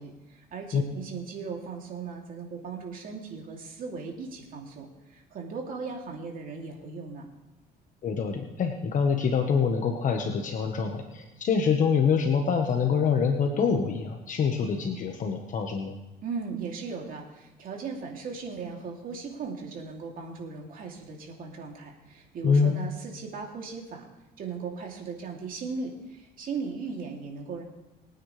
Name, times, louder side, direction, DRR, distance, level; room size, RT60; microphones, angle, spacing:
voice 1, 0.0-7.3 16.2-24.1 24.4-27.6, right 5 dB, 55° right, 0 dB, 2.9 m, -37 dB
voice 2, 8.0-15.9 22.4-22.8, left 6 dB, 50° left, 4 dB, 1.3 m, -25 dB
22.5 x 9.4 x 3.3 m, 1.0 s
cardioid pair, 110°, 17 cm